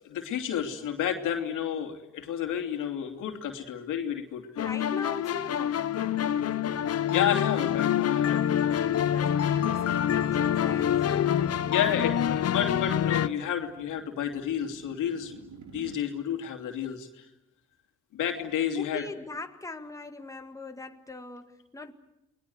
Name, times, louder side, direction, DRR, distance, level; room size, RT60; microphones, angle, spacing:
voice 1, 0.0-4.5 7.1-8.4 11.6-17.2 18.1-19.0, left 9 dB, 85° left, 2.9 m, -31 dB
sound 1, 4.6-13.3, left 10 dB, 55° left, 1.0 m, -26 dB
voice 2, 4.6-6.8 8.6-12.9 18.8-21.9, left 3 dB, 10° left, 1.9 m, -42 dB
sound 2, 11.8-16.0, right 5 dB, 70° right, 2.9 m, -53 dB
29.5 x 21.0 x 8.0 m
cardioid pair, 90°, 30 cm